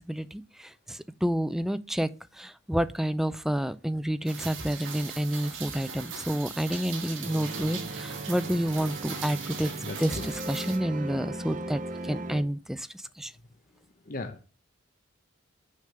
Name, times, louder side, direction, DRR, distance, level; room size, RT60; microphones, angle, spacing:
voice 1, 0.0-2.1 2.3-9.7 10.0-13.3, equal, ahead, 0.4 m, -29 dB
Rain, 4.3-10.8, right 6 dB, 70° right, 2.1 m, -40 dB
sound 1, 7.2-12.4, right 2 dB, 40° right, 0.8 m, -38 dB
voice 2, 9.6-10.3 14.1-14.4, left 2 dB, 45° left, 0.8 m, -38 dB
6.6 x 5.0 x 6.8 m
head